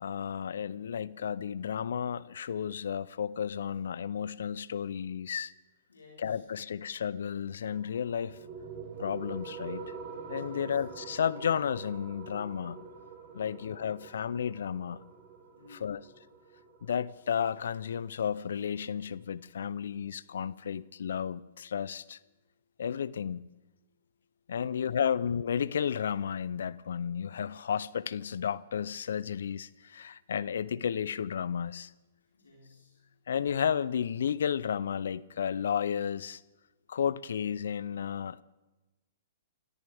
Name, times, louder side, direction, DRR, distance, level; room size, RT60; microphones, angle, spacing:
voice 1, 0.0-5.5 6.2-8.4 9.0-9.8 10.3-12.8 13.3-15.0 15.8-16.0 16.8-22.2 22.8-23.4 24.5-31.9 33.3-36.4 36.9-38.4, left 8 dB, 75° left, 0.6 m, -32 dB
voice 2, 5.9-6.4 10.5-10.8 15.5-16.1 24.6-25.0 32.3-33.0, left 3 dB, 90° left, 4.4 m, -57 dB
sound 1, 7.7-18.7, right 5 dB, 40° right, 3.9 m, -46 dB
30.0 x 13.5 x 3.5 m
hypercardioid pair, 120°, 0 cm